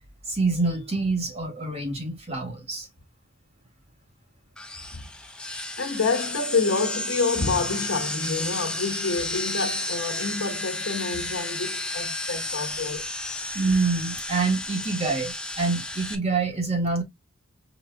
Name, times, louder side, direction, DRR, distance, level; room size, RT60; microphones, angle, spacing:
voice 1, 0.3-2.9 13.5-17.0, right 3 dB, 30° right, 1.9 m, -26 dB
sound 1, 4.6-16.2, left 2 dB, 5° left, 0.7 m, -32 dB
voice 2, 5.8-13.1, left 4 dB, 85° left, 1.2 m, -28 dB
4.9 x 4.2 x 2.3 m
head